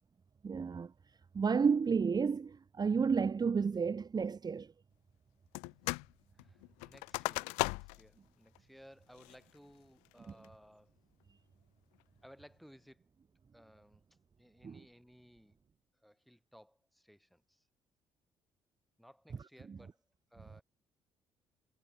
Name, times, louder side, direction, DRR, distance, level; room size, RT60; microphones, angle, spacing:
voice 1, 0.4-0.9 1.3-4.7 14.6-14.8 19.7-19.8, right 5 dB, 35° right, 0.9 m, -31 dB
sound 1, 5.5-6.1 6.4-8.1 8.5-8.6 9.1-9.5 10.0-10.5, left 32 dB, 85° left, 1.0 m, -37 dB
voice 2, 6.4-10.9 12.2-13.0 13.5-14.0 14.4-15.6 16.0-17.6 19.0-20.0 20.3-20.6, equal, ahead, 6.1 m, -60 dB
hypercardioid pair, 55°, 12 cm